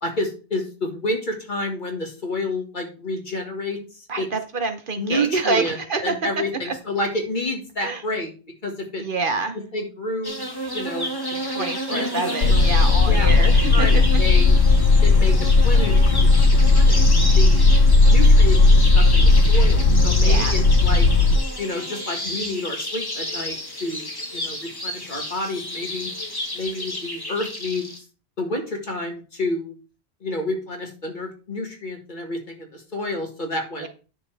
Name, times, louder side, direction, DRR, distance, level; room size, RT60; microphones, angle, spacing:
voice 1, 0.0-4.3 5.0-8.3 8.6-9.0 9.7-10.4 10.7-11.1 11.6-14.5 15.0-16.3 16.7-17.7 18.1-21.1 21.6-24.0 24.3-26.1 26.5-27.9 28.4-29.8 30.2-33.9, left 1 dB, 45° left, 2 dB, 2.0 m, -29 dB
voice 2, 4.1-6.7 7.8-8.0 9.0-9.6 11.5-14.2 20.2-20.6 33.8-33.9, right 4 dB, 55° right, 8 dB, 0.9 m, -27 dB
sound 1, 10.2-28.0, equal, 20° left, 1.6 m, -31 dB
sound 2, 12.4-21.4, left 3 dB, 75° left, 1.2 m, -15 dB
9.9 x 6.5 x 3.4 m, 0.36 s
omnidirectional pair, 1.1 m